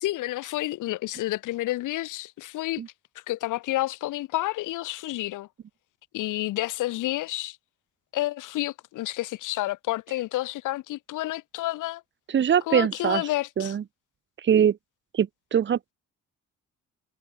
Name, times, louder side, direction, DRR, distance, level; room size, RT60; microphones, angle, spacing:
voice 1, 0.0-2.8 3.3-5.5 6.1-7.6 8.1-12.0 12.7-13.8, left 16 dB, 85° left, 1.4 m, -30 dB
voice 2, 12.3-13.2 13.6-13.8 14.4-14.8 15.1-15.9, right 8 dB, 40° right, 0.8 m, -22 dB
cardioid pair, 90°, 30 cm